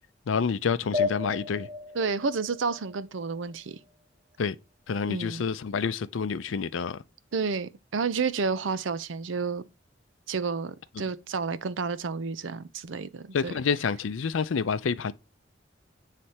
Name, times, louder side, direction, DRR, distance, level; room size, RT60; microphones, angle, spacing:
voice 1, 0.3-1.7 4.4-4.5 4.9-7.0 13.3-15.1, left 5 dB, 85° left, 0.5 m, -28 dB
sound 1, 0.9-3.9, left 4 dB, 35° right, 1.8 m, -33 dB
voice 2, 1.9-3.8 5.0-5.4 7.3-9.6 10.3-13.6, right 5 dB, 80° right, 0.6 m, -30 dB
9.3 x 3.3 x 4.2 m
head